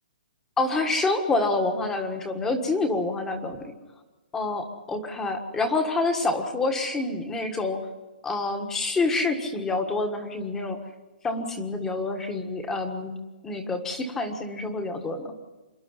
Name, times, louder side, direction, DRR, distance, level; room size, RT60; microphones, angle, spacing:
voice 1, 0.6-3.7 4.3-7.8 8.2-10.8 11.2-13.1 13.4-15.3, left 3 dB, 10° left, 5 dB, 1.6 m, -27 dB
26.5 x 11.5 x 9.7 m, 1.2 s
hypercardioid pair, 170°, 5 cm